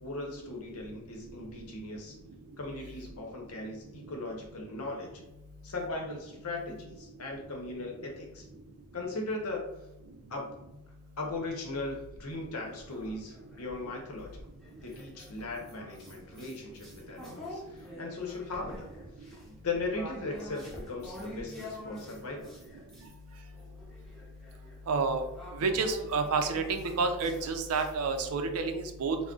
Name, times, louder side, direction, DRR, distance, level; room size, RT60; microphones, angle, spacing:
voice 1, 0.0-2.2 2.6-5.2 5.6-8.5 8.9-9.6 10.3-10.5 11.2-14.4 14.8-18.9 19.2-22.5, left 2 dB, 85° left, 1 dB, 0.7 m, -38 dB
sound 1, 12.3-13.7 14.2-23.1 23.5-28.3, left 1 dB, ahead, 0.6 m, -47 dB
voice 2, 24.9-25.3 25.5-29.2, right 4 dB, 85° right, 6 dB, 0.4 m, -29 dB
2.3 x 2.0 x 3.7 m, 0.92 s
head